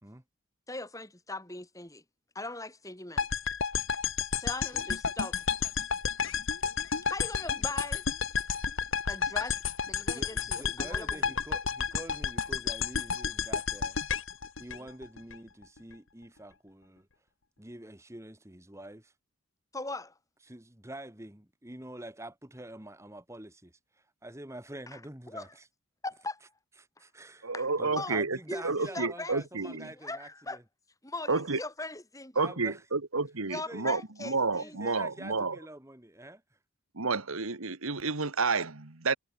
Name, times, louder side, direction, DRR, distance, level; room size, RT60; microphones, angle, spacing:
voice 1, 0.7-2.0 2.4-3.3 4.4-5.4 7.1-8.0 9.1-9.6 9.8-11.2 14.8-14.9 19.7-20.1 24.9-25.0 25.3-25.5 26.0-26.4 27.5-28.2 28.5-29.4 29.6-30.6 31.0-32.4 33.5-35.0, left 2 dB, 15° left, 5.5 m, -40 dB
sound 1, 3.2-15.3, left 6 dB, 65° left, 1.5 m, -31 dB
voice 2, 10.1-14.0 14.6-17.1 17.6-19.1 20.4-25.7 26.8-27.5 27.8-30.6 32.3-32.8 33.5-34.0 34.5-36.4, right 1 dB, 15° right, 1.6 m, -46 dB
voice 3, 27.4-28.4 28.6-29.9 31.3-31.6 32.3-35.6 36.9-39.2, right 4 dB, 80° right, 1.7 m, -30 dB
head